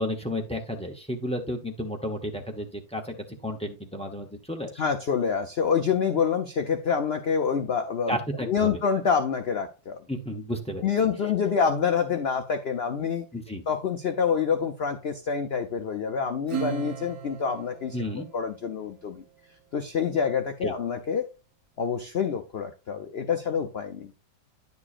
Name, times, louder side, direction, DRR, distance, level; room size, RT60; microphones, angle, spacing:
voice 1, 0.0-3.1 3.4-4.8 8.1-8.8 10.1-10.8 13.3-13.6 17.9-18.2 20.6-20.7, equal, 10° left, 1 dB, 0.3 m, -32 dB
voice 2, 4.8-8.2 8.5-10.0 10.8-13.2 13.7-18.0 18.3-19.2 19.7-21.3 21.8-24.1, left 6 dB, 80° left, 7 dB, 0.5 m, -27 dB
Acoustic guitar / Strum, 16.5-19.4, right 7 dB, 60° right, 1.6 m, -37 dB
10.0 x 6.8 x 2.5 m, 0.29 s
omnidirectional pair, 1.9 m